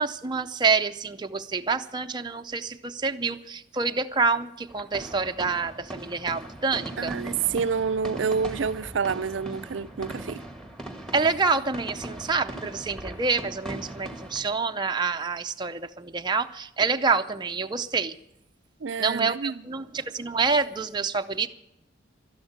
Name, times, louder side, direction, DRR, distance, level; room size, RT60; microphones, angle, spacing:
voice 1, 0.0-7.1 11.1-18.1 19.0-21.5, right 4 dB, 25° right, 0.5 m, -27 dB
sound 1, 4.7-14.4, right 1 dB, 5° left, 1.7 m, -39 dB
voice 2, 7.0-10.4 18.8-19.6, right 6 dB, 70° right, 0.5 m, -28 dB
12.5 x 11.5 x 8.7 m
head